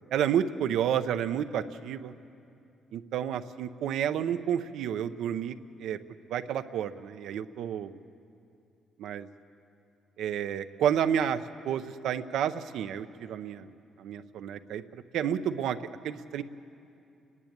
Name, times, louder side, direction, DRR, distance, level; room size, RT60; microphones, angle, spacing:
voice 1, 0.1-2.1 2.9-6.0 6.3-8.0 9.0-9.3 10.2-15.8 16.0-16.4, right 9 dB, 80° right, 10 dB, 0.7 m, -30 dB
29.0 x 11.0 x 8.7 m, 2.6 s
cardioid pair, 90°, 0 cm